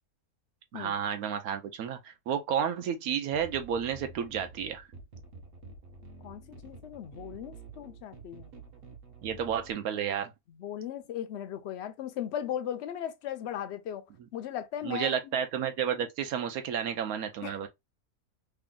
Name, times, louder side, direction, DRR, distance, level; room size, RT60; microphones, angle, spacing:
voice 1, 0.7-4.9 9.2-10.3 14.8-17.7, right 8 dB, 75° right, 1.0 m, -31 dB
sound 1, 3.3-9.7, right 3 dB, 50° right, 0.8 m, -49 dB
voice 2, 6.2-8.5 10.5-14.0 14.3-15.2 17.4-17.6, left 10 dB, 65° left, 0.7 m, -37 dB
3.3 x 2.4 x 3.7 m
omnidirectional pair, 1.6 m